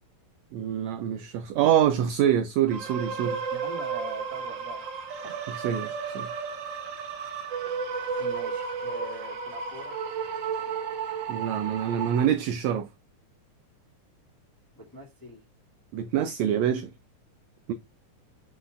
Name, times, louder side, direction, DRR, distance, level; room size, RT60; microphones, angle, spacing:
voice 1, 0.5-3.4 5.5-5.9 6.1-6.3 11.3-12.9 15.9-16.9, right 10 dB, 80° right, 1.6 m, -25 dB
sound 1, 2.7-12.3, right 6 dB, 60° right, 1.2 m, -33 dB
voice 2, 3.5-4.9 5.2-5.4 8.2-10.0 14.7-15.4, right 2 dB, 10° left, 1.4 m, -42 dB
7.1 x 5.8 x 2.4 m
omnidirectional pair, 3.7 m